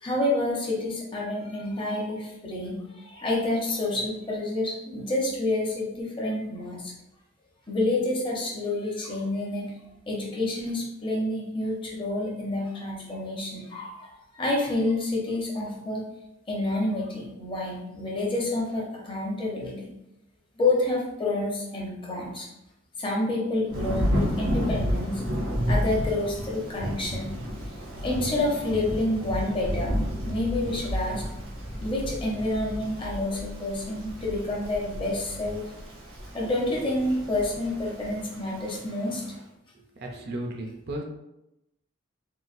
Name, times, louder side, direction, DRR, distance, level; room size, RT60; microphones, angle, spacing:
voice 1, 0.0-6.9 7.7-9.7 10.1-16.0 16.5-19.9 20.5-22.5 23.0-25.2 25.7-27.3 28.0-31.2 31.8-35.7 36.3-39.2, left 2 dB, 25° left, -3 dB, 0.7 m, -28 dB
Thunder / Rain, 23.7-39.3, equal, 85° right, 0.9 m, -32 dB
voice 2, 39.7-41.0, right 1 dB, 50° right, 1 dB, 0.5 m, -35 dB
3.8 x 2.3 x 2.5 m, 0.88 s
head